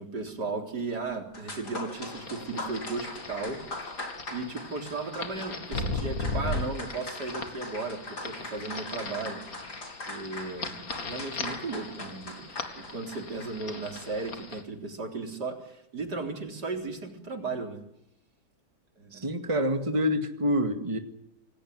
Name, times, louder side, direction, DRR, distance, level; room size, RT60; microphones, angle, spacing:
voice 1, 0.0-3.6 4.3-9.4 10.1-12.5 12.8-17.8 19.0-19.3, right 3 dB, 80° right, 4 dB, 4.4 m, -35 dB
sound 1, 1.3-14.3, left 2 dB, 80° left, 6.0 m, -41 dB
sound 2, 1.9-14.6, left 3 dB, 60° left, 2.8 m, -38 dB
voice 2, 19.1-21.0, equal, 20° right, 7 dB, 2.0 m, -27 dB
27.5 x 18.5 x 9.5 m, 0.76 s
omnidirectional pair, 1.7 m